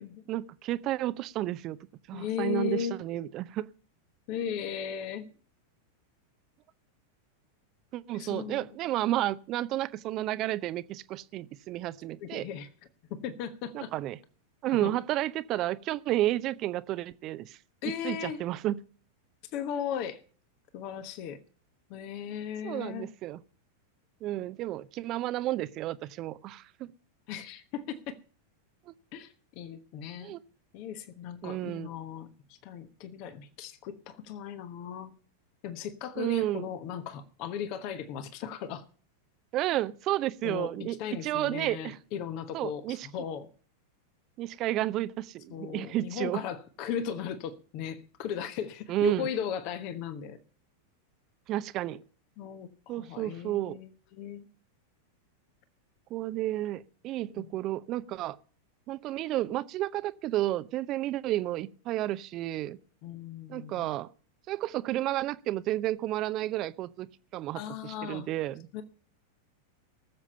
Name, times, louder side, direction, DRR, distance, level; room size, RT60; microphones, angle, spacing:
voice 1, 0.3-1.8 2.1-3.7 7.9-12.5 13.7-14.2 14.6-17.6 18.0-18.8 22.6-23.4 24.2-26.9 30.2-30.4 31.4-31.9 36.2-36.7 39.5-41.0 41.2-42.0 42.5-43.1 44.4-46.4 48.9-49.3 51.5-52.0 52.9-53.8 56.1-58.4 58.9-62.8 63.5-64.1 64.5-67.1 67.3-68.7, right 14 dB, 35° right, 0.7 m, -31 dB
voice 2, 2.1-3.0 4.3-5.3 8.1-8.7 12.2-12.7 13.1-13.9 14.8-14.9 17.8-18.4 19.5-20.2 20.7-21.4 21.9-23.1 27.3-28.2 29.1-30.4 30.7-35.1 35.6-38.8 40.4-43.5 45.5-50.4 52.4-54.5 57.4-57.5 63.0-63.9 67.5-68.3 68.7-68.8, left 8 dB, 45° left, 1.2 m, -37 dB
19.0 x 7.5 x 5.5 m
figure-of-eight pair, 90°, 0 cm